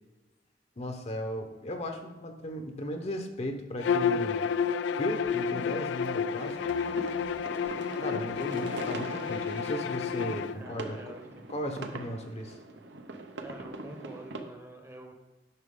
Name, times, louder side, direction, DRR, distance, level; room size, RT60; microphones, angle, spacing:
voice 1, 0.8-4.5 5.0-6.6 8.0-11.0 11.5-12.6, equal, 35° left, 5 dB, 0.8 m, -36 dB
Bowed string instrument, 3.8-10.5, left 6 dB, 75° left, 0.3 m, -30 dB
sound 1, 6.4-14.4, right 3 dB, 70° right, 0.8 m, -42 dB
voice 2, 10.5-11.5 13.4-15.1, right 1 dB, 15° right, 4 dB, 0.9 m, -47 dB
9.8 x 5.8 x 3.7 m, 1.1 s
head